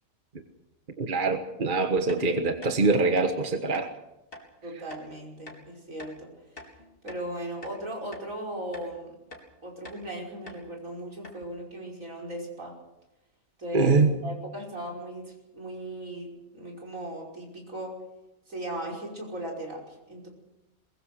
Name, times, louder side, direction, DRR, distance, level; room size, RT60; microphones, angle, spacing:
voice 1, 1.0-3.9 13.7-14.2, right 3 dB, 40° right, 6 dB, 1.5 m, -24 dB
sound 1, 2.1-2.2 2.6-2.8 3.1-3.3 3.7-3.9 4.3-4.5 4.9-5.0 5.5-5.6 6.0-6.2 6.6-7.3 7.6-7.8 8.1-8.3 8.7-8.9 9.3-9.5 9.8-10.0 10.5-10.6 10.9-11.0 11.2-11.4, left 1 dB, 40° left, 4.3 m, -45 dB
voice 2, 4.6-6.4 7.0-9.1 9.6-12.8 13.6-14.0 14.2-18.0 18.5-20.3, right 1 dB, 70° right, -1 dB, 6.0 m, -37 dB
22.0 x 21.5 x 6.5 m, 0.90 s
omnidirectional pair, 1.4 m